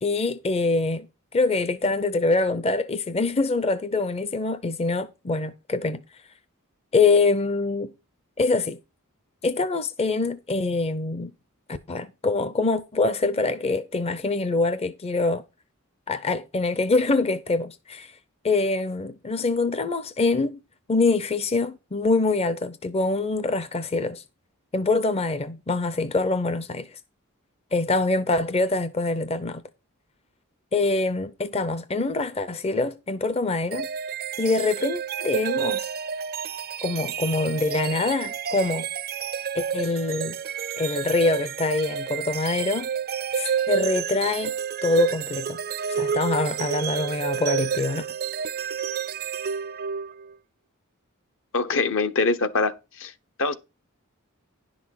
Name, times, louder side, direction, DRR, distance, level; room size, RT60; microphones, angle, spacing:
voice 1, 0.0-1.1 1.3-6.0 6.9-7.9 8.4-8.8 9.4-11.3 11.7-15.4 16.1-18.1 18.4-20.6 20.9-24.2 24.7-26.9 27.7-29.6 30.7-33.9 34.4-35.9 36.8-38.9 39.5-40.4 40.8-42.9 43.3-44.5 44.8-45.6 45.9-48.1, left 3 dB, 30° left, 0.6 m, -24 dB
sound 1, 33.7-50.4, right 7 dB, 45° right, 0.4 m, -30 dB
voice 2, 51.5-53.1 53.4-53.5, left 3 dB, 65° left, 1.0 m, -24 dB
10.5 x 6.2 x 4.7 m
head